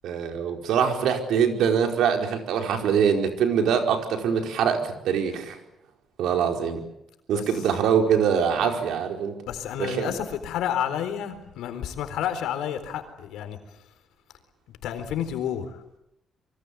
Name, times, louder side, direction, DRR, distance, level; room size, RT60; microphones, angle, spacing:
voice 1, 0.0-5.6 6.2-6.8 7.3-9.4 9.8-10.1, right 7 dB, 80° right, 4 dB, 4.8 m, -23 dB
voice 2, 9.5-13.6 14.8-15.8, left 9 dB, 90° left, 9 dB, 4.0 m, -30 dB
26.0 x 24.0 x 8.6 m, 0.84 s
cardioid pair, 90°, 0 cm